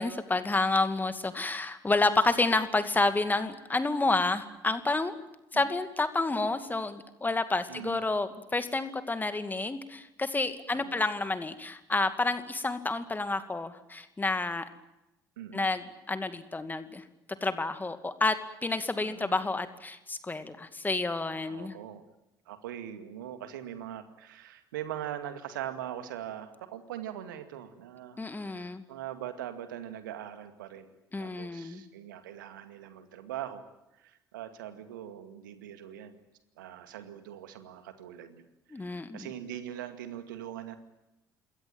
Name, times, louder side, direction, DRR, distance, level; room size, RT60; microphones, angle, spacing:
voice 1, 0.0-5.1 5.5-14.6 15.5-17.0 17.4-18.4 18.6-21.7 28.2-28.8 31.1-31.8 38.7-39.3, left 3 dB, 15° left, 10 dB, 2.4 m, -29 dB
voice 2, 7.7-8.1 10.7-11.1 15.4-15.7 19.0-19.4 21.5-22.0 22.5-30.9 31.2-33.6 33.9-36.2 36.6-40.8, right 11 dB, 70° right, 9 dB, 2.2 m, -42 dB
27.5 x 21.5 x 9.3 m, 0.94 s
figure-of-eight pair, 55°, 11 cm